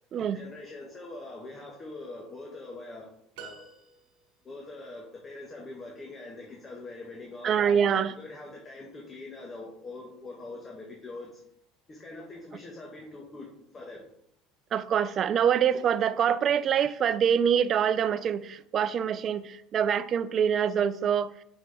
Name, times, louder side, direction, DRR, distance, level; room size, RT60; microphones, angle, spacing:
voice 1, 0.3-3.1 3.4-3.6 4.4-11.4 11.9-13.5 13.7-14.0, left 2 dB, 30° left, -1 dB, 1.4 m, -43 dB
sound 1, 3.3-4.5, right 6 dB, 75° right, 1.1 m, -48 dB
voice 2, 7.4-8.1 14.7-21.3, right 8 dB, 45° right, 14 dB, 0.4 m, -25 dB
6.3 x 5.8 x 3.4 m, 0.73 s
supercardioid pair, 95°, 0 cm